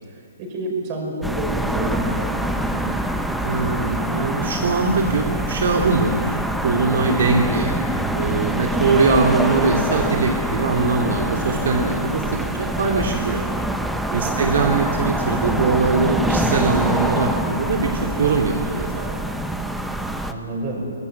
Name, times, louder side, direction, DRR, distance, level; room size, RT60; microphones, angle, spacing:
voice 1, 0.1-3.0 14.2-14.6 20.2-20.9, right 1 dB, 30° right, 1 dB, 5.8 m, -30 dB
sound 1, 1.2-20.3, right 1 dB, ahead, 0.8 m, -25 dB
voice 2, 3.4-6.4 6.6-7.7 8.1-13.4 14.1-19.1, right 3 dB, 65° right, 1 dB, 2.5 m, -21 dB
23.5 x 18.5 x 8.5 m, 2.5 s
hypercardioid pair, 155°, 0 cm